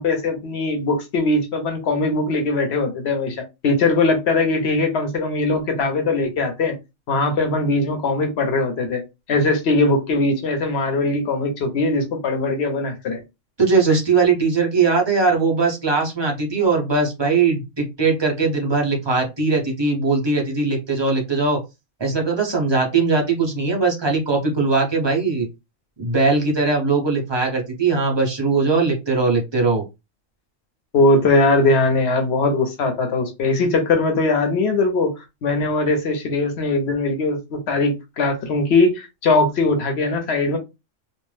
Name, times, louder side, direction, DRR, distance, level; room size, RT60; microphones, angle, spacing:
voice 1, 0.0-6.8 7.1-9.0 9.3-13.2 30.9-35.1 35.4-40.6, left 2 dB, 55° left, 0.9 m, -20 dB
voice 2, 13.6-21.6 22.0-25.5 26.0-29.8, right 4 dB, 40° right, 0.4 m, -20 dB
2.4 x 2.1 x 3.2 m
omnidirectional pair, 1.4 m